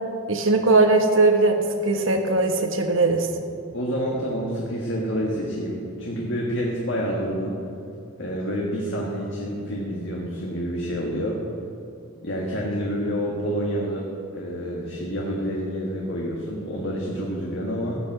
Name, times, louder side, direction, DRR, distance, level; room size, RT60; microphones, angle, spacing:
voice 1, 0.3-3.3, right 3 dB, 65° right, 5 dB, 1.3 m, -19 dB
voice 2, 3.7-7.6 8.2-11.4 12.2-14.1 14.3-18.0, equal, 60° left, -3 dB, 1.7 m, -28 dB
15.5 x 6.2 x 7.9 m, 2.5 s
head